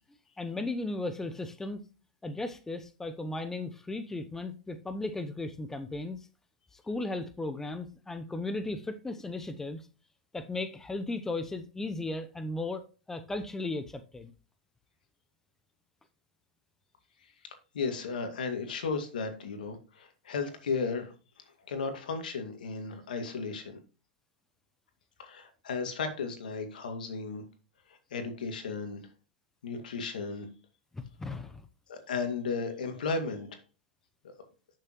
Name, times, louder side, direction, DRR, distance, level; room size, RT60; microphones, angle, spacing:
voice 1, 0.4-1.8 2.2-6.3 6.7-9.9 10.3-12.8 13.1-14.3 30.9-31.7, left 2 dB, 10° left, 10 dB, 0.8 m, -36 dB
voice 2, 17.7-21.1 21.7-23.8 25.2-27.4 28.1-29.0 29.6-30.5 31.9-33.6, left 4 dB, 75° left, 6 dB, 2.2 m, -34 dB
11.5 x 6.6 x 3.1 m, 0.34 s
hypercardioid pair, 110°, 5 cm